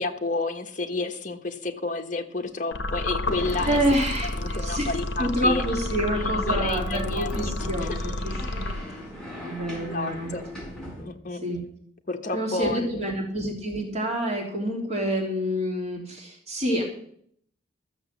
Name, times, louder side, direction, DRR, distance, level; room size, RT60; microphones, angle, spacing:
voice 1, 0.0-3.8 4.3-5.6 6.1-7.5 7.8-8.0 9.7-10.4 11.0-11.4 12.1-13.2, left 3 dB, 40° left, 6 dB, 1.3 m, -31 dB
sound 1, 2.7-9.2, left 2 dB, 65° left, 1.0 m, -30 dB
sound 2, 2.7-11.0, left 1 dB, 5° left, 5.2 m, -41 dB
voice 2, 3.7-4.9 5.2-8.7 9.4-10.3 11.4-11.6 12.3-16.8, equal, 35° right, 0 dB, 3.1 m, -27 dB
13.5 x 7.0 x 7.4 m, 0.64 s
head